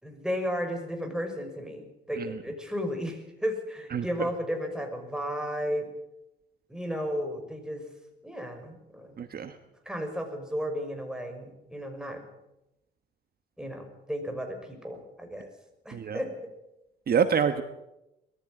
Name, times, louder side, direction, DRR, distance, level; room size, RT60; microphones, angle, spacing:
voice 1, 0.0-5.9 6.7-7.9 8.2-9.2 9.8-12.3 13.6-15.5 15.8-16.5, equal, 5° right, 4 dB, 6.2 m, -34 dB
voice 2, 9.2-9.5 15.9-16.2 17.1-17.6, right 7 dB, 50° right, 9 dB, 1.4 m, -25 dB
21.0 x 15.0 x 8.9 m, 0.90 s
cardioid pair, 90°, 20 cm